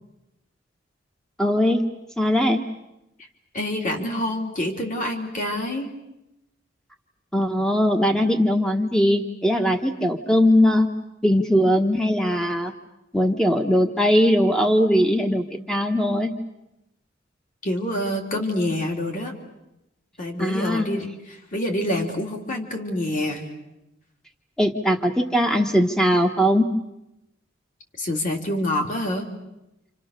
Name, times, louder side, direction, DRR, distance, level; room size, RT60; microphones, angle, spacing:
voice 1, 1.4-1.8 2.2-2.6 7.3-10.9 11.2-12.7 13.1-16.3 20.4-20.9 24.6-26.7, equal, 5° left, 3 dB, 1.3 m, -20 dB
voice 2, 3.5-5.9 17.6-19.3 20.2-23.5 28.0-29.3, left 1 dB, 45° left, 1 dB, 3.5 m, -27 dB
29.5 x 27.0 x 6.7 m, 0.92 s
head